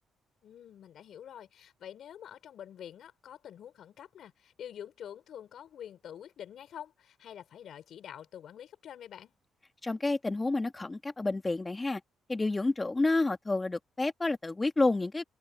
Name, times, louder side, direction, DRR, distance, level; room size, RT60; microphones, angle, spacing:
voice 1, 0.4-9.3, left 9 dB, 65° left, 6.5 m, -47 dB
voice 2, 9.8-12.0 12.3-15.2, left 2 dB, 20° left, 2.0 m, -29 dB
cardioid pair, 90°, 0 cm